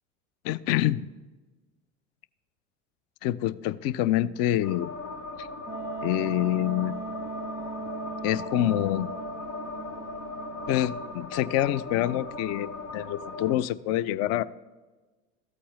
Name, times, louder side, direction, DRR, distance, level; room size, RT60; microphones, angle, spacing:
voice 1, 0.4-1.1 3.2-4.9 5.4-5.5 6.0-7.0 8.2-9.1 10.7-14.4, left 13 dB, 45° left, 18 dB, 0.4 m, -26 dB
sound 1, 4.6-13.5, left 3 dB, 85° left, 1.0 m, -38 dB
Wind instrument woodwind instrument, 5.7-11.2, right 5 dB, 10° right, 0.8 m, -39 dB
14.0 x 8.5 x 3.1 m, 1.2 s
hypercardioid pair, 80°, 37 cm